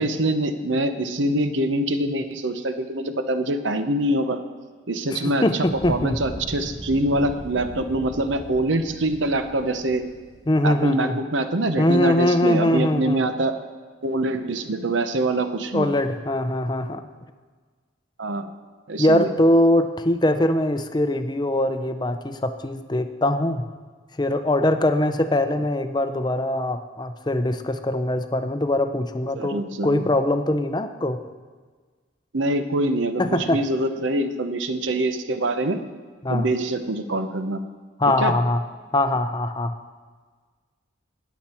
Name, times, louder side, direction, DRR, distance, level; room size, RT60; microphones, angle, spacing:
voice 1, 0.0-4.4 4.9-10.0 10.6-13.5 14.0-15.9 18.2-18.5 18.9-19.3 29.3-30.0 32.3-35.8 36.3-37.6 38.2-38.3, right 1 dB, 70° right, 9 dB, 0.8 m, -24 dB
voice 2, 5.1-6.2 10.5-11.2 11.8-13.2 15.7-17.0 19.0-23.6 24.2-31.2 33.2-33.6 36.2-36.5 38.0-38.6 38.9-39.7, left 1 dB, 20° left, 9 dB, 0.5 m, -22 dB
Fire, 5.6-10.8, equal, 15° right, 2.5 m, -39 dB
19.5 x 7.3 x 4.4 m, 1.5 s
head